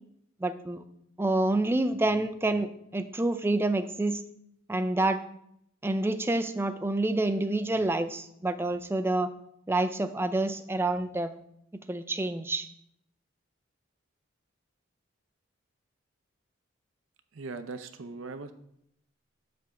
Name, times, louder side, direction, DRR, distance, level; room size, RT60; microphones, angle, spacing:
voice 1, 0.4-0.8 1.2-4.2 4.7-5.2 5.8-9.3 9.7-11.3 11.9-12.7, right 2 dB, 10° right, 9 dB, 0.3 m, -28 dB
voice 2, 17.3-18.5, right 3 dB, 75° right, 10 dB, 0.6 m, -39 dB
7.5 x 3.4 x 6.2 m, 0.74 s
head